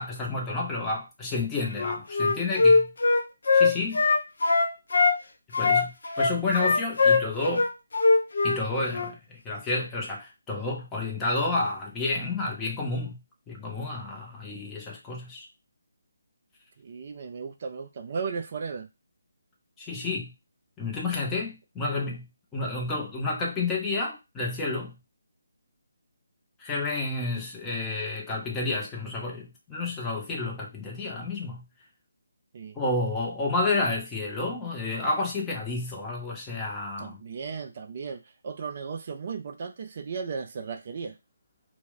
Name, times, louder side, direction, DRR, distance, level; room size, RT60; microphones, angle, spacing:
voice 1, 0.0-2.9 3.5-4.0 5.6-7.7 8.4-13.2 13.5-15.5 19.8-20.3 20.8-25.0 26.6-31.7 32.8-37.2, left 2 dB, 10° left, 0.6 m, -30 dB
Wind instrument woodwind instrument, 1.7-5.2 5.5-8.6 8.9-9.1, left 3 dB, 55° left, 0.5 m, -21 dB
voice 2, 16.8-18.9 32.5-32.8 37.0-41.2, right 5 dB, 40° right, 0.3 m, -36 dB
2.2 x 2.1 x 3.8 m
figure-of-eight pair, 145°, 0 cm